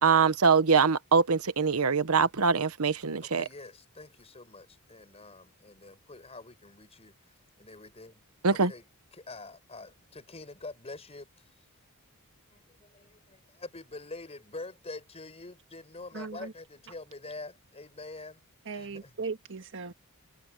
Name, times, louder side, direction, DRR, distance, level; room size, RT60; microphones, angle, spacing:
voice 1, 0.0-3.4 8.4-8.7, right 5 dB, 75° right, 1.1 m, -23 dB
voice 2, 3.2-8.2 8.5-8.9 9.1-11.4 12.5-18.4 18.7-19.1, left 2 dB, 30° left, 5.4 m, -46 dB
voice 3, 16.1-16.5 18.6-19.9, right 4 dB, 60° right, 1.8 m, -38 dB
head